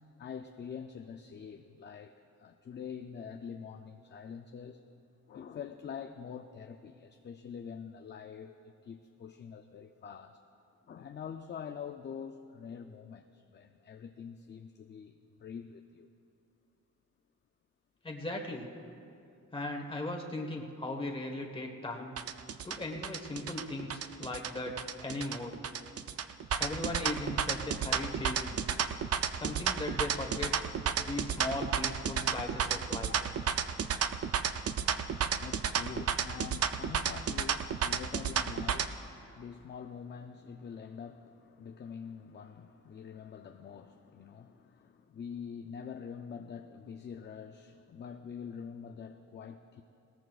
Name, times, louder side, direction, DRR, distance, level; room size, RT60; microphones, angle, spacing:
voice 1, 0.2-4.8 5.3-10.4 10.9-16.1 34.8-49.8, left 7 dB, 35° left, 0.4 m, -45 dB
voice 2, 18.0-18.7 19.5-22.1 22.6-25.6 26.6-28.6 29.3-30.5 31.0-33.1, left 2 dB, 15° left, 1.4 m, -38 dB
sound 1, 22.2-38.9, right 7 dB, 50° right, 0.6 m, -32 dB
20.0 x 18.5 x 2.4 m
wide cardioid pair, 140°, 31 cm